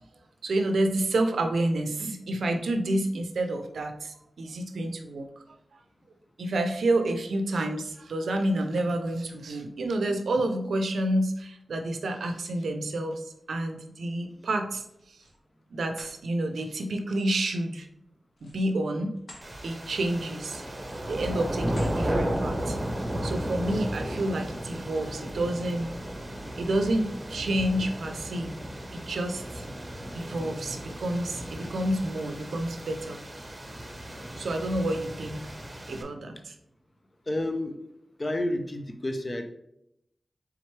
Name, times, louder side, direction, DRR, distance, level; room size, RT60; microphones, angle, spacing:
voice 1, 0.4-5.3 6.4-14.8 15.7-17.9 18.4-19.1 19.6-20.6 21.1-22.8 23.2-25.9 26.6-28.6 28.9-29.6 30.1-33.2 34.4-35.5 35.9-36.5, right 1 dB, 90° right, 6 dB, 0.5 m, -29 dB
sound 1, 14.9-15.4 15.8-16.2 18.3-19.5 19.9-20.1 20.7-21.2 21.6-22.0, left 1 dB, 80° left, 1.1 m, -49 dB
sound 2, 19.4-36.0, equal, 30° right, 0.9 m, -34 dB
voice 2, 37.3-37.8 38.2-39.5, left 1 dB, 40° left, 6 dB, 0.6 m, -30 dB
4.3 x 3.5 x 3.2 m, 0.78 s
cardioid pair, 50°, 0 cm